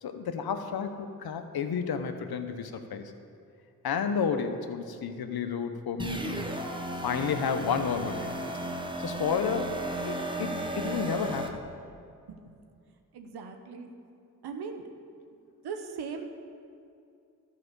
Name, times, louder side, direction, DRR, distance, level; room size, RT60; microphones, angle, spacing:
voice 1, 0.0-3.1 3.8-6.7 7.0-8.3 9.0-11.6, left 6 dB, 70° left, 7 dB, 0.9 m, -31 dB
sound 1, 6.0-11.5, right 1 dB, 10° right, 1.2 m, -34 dB
voice 2, 13.1-13.9 14.4-14.8 15.6-16.3, right 5 dB, 80° right, 5 dB, 1.0 m, -39 dB
12.5 x 5.0 x 6.8 m, 2.4 s
supercardioid pair, 40°, 39 cm